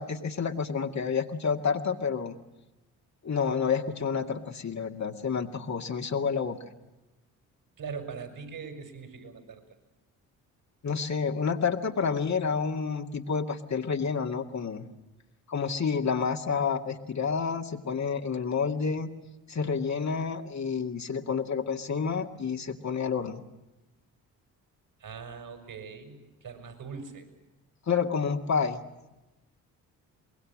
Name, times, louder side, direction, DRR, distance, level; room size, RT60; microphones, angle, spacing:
voice 1, 0.0-2.4 3.2-6.6 10.8-14.9 15.5-19.1 19.5-23.4 27.9-28.8, left 6 dB, 40° left, 3 dB, 2.3 m, -29 dB
voice 2, 7.8-9.6 25.0-27.3, right 5 dB, 55° right, 7 dB, 5.9 m, -41 dB
24.5 x 21.5 x 7.5 m, 1.0 s
hypercardioid pair, 50°, 41 cm